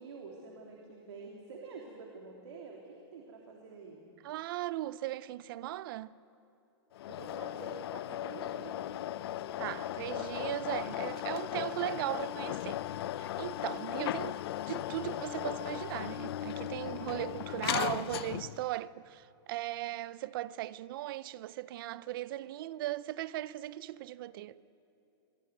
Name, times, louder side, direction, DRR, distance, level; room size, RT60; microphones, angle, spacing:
voice 1, 0.0-4.0 7.1-8.9, right 4 dB, 90° right, 3.3 m, -48 dB
voice 2, 4.2-6.1 9.6-12.8 13.2-24.6, right 15 dB, 55° right, 0.6 m, -38 dB
sound 1, 6.9-18.7, left 13 dB, 65° left, 0.6 m, -37 dB
25.0 x 18.5 x 9.3 m
supercardioid pair, 155°, 14 cm